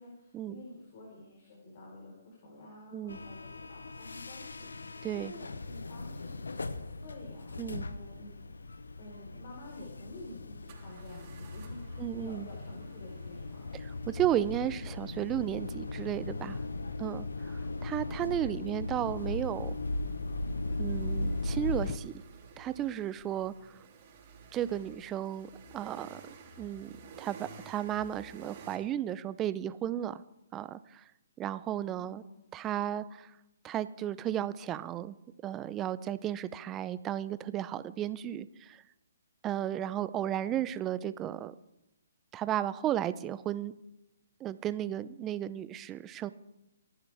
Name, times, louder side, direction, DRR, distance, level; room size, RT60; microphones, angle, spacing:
voice 1, 0.0-8.5 9.0-13.7 31.9-32.4, left 2 dB, 50° left, -3 dB, 4.4 m, -50 dB
sound 1, 3.1-22.0, left 2 dB, 85° left, 0.8 m, -38 dB
sound 2, 10.7-28.8, right 4 dB, 35° right, 3.4 m, -54 dB
voice 2, 12.0-12.5 14.1-16.6 17.0-19.7 20.8-22.1 22.6-23.5 24.5-25.5 25.7-26.2 26.6-26.9 27.2-30.2 30.5-31.0 31.4-32.2 32.5-33.3 33.6-35.2 35.4-38.8 39.4-41.5 42.3-43.7 44.4-46.3, right 11 dB, 20° right, 15 dB, 0.6 m, -34 dB
25.0 x 11.0 x 3.5 m, 0.88 s
hypercardioid pair, 140°, 0 cm